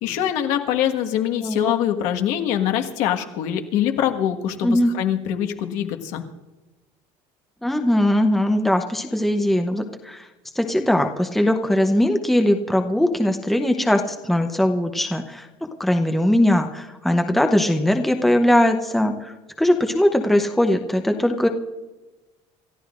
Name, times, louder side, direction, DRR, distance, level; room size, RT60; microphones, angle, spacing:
voice 1, 0.0-6.2, left 10 dB, 70° left, 5 dB, 1.5 m, -23 dB
voice 2, 1.4-1.7 4.6-4.9 7.6-10.3 10.6-21.5, left 1 dB, ahead, 4 dB, 0.8 m, -20 dB
28.0 x 14.0 x 2.5 m, 1.1 s
cardioid pair, 160°, 12 cm